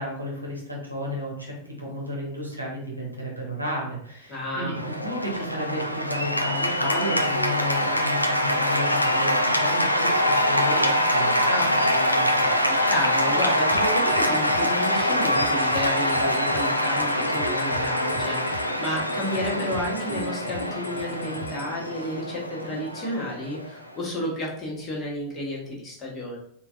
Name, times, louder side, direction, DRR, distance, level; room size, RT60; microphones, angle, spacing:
voice 1, 0.0-12.5, equal, 90° right, -3 dB, 1.0 m, -32 dB
voice 2, 4.3-4.8 12.7-26.4, left 1 dB, 25° left, -4 dB, 1.1 m, -31 dB
Cheering / Applause, 4.7-24.0, equal, 90° left, 0.3 m, -24 dB
sound 1, 13.7-21.7, left 1 dB, 60° left, 1.0 m, -41 dB
3.8 x 2.3 x 2.4 m, 0.69 s
figure-of-eight pair, 90°, 0 cm